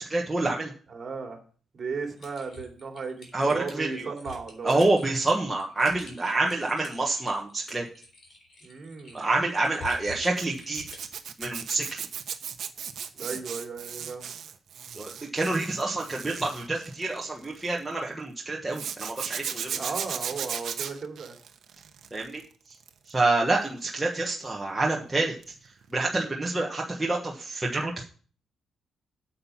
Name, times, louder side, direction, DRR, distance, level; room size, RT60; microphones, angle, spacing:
voice 1, 0.1-0.7 3.3-4.1 4.6-7.9 9.1-10.8 11.4-12.0 14.9-19.9 22.1-22.4 23.1-25.3 25.9-28.0, right 2 dB, 10° right, -2 dB, 1.3 m, -27 dB
voice 2, 0.9-1.4 1.7-4.8 8.6-9.2 13.1-14.4 19.7-21.4, right 4 dB, 40° right, 3 dB, 2.6 m, -35 dB
Typing, 2.2-11.1, left 3 dB, 40° left, 3.6 m, -48 dB
Zipper (clothing), 10.4-17.8 18.7-22.4 22.7-23.1 25.4-25.6 25.8-25.9, right 8 dB, 65° right, 1.0 m, -36 dB
8.8 x 7.3 x 5.8 m, 0.42 s
cardioid pair, 140°, 0 cm